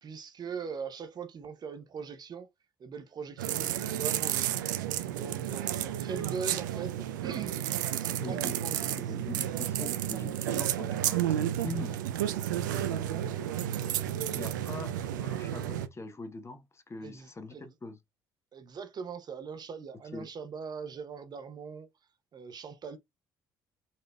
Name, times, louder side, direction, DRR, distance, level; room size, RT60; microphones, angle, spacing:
voice 1, 0.0-2.5 2.8-4.6 5.1-8.9 9.5-9.7 17.0-17.7 18.5-21.9 22.3-23.0, right 6 dB, 45° right, 0.7 m, -41 dB
sound 1, 3.4-15.9, right 11 dB, 80° right, 0.4 m, -32 dB
voice 2, 8.2-12.0 12.7-13.6 14.1-18.0 20.1-20.3, left 2 dB, 25° left, 0.8 m, -43 dB
4.1 x 3.1 x 2.2 m
hypercardioid pair, 55°, 10 cm